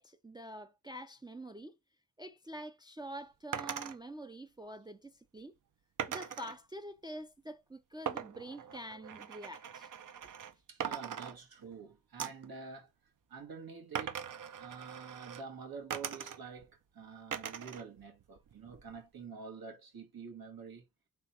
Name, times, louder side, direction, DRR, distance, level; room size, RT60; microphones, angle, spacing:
voice 1, 0.0-1.7 2.2-5.5 6.1-9.9, right 1 dB, 10° right, 0.4 m, -46 dB
sound 1, 3.5-4.0 6.0-6.6 8.1-10.5 10.8-11.8 12.2-12.5 13.9-15.4 15.9-16.6 17.3-17.8 18.2-19.0, right 8 dB, 60° right, 0.7 m, -41 dB
voice 2, 10.7-12.9 13.3-14.3 14.6-20.8, right 5 dB, 85° right, 1.7 m, -48 dB
3.5 x 3.5 x 4.2 m
wide cardioid pair, 90°, 35 cm